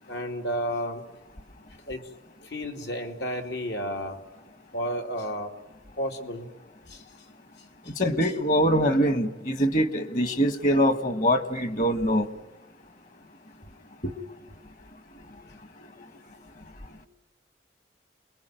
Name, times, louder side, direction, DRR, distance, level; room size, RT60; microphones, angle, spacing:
voice 1, 0.1-1.0 1.9-2.0 2.4-4.2 4.7-5.5 6.0-6.5 6.9-7.0 8.2-8.3, equal, 80° left, 3 dB, 3.0 m, -32 dB
voice 2, 8.0-12.3 14.0-14.1 15.1-15.3 15.8-16.1 16.9-17.0, equal, 45° left, 10 dB, 1.6 m, -24 dB
29.0 x 21.5 x 9.2 m, 1.1 s
head